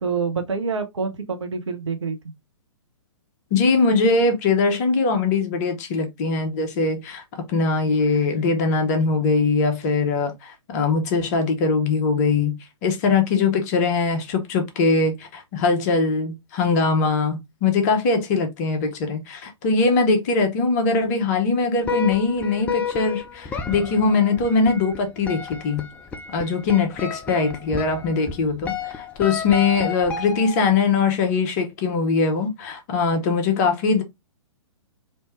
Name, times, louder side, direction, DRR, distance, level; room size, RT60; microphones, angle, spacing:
voice 1, 0.0-2.2, right 5 dB, 65° right, 0.9 m, -26 dB
voice 2, 3.5-25.9 26.3-34.0, left 4 dB, 35° left, 0.9 m, -21 dB
sound 1, 21.8-30.8, left 6 dB, 10° left, 0.3 m, -31 dB
3.3 x 2.8 x 3.1 m
figure-of-eight pair, 120°, 16 cm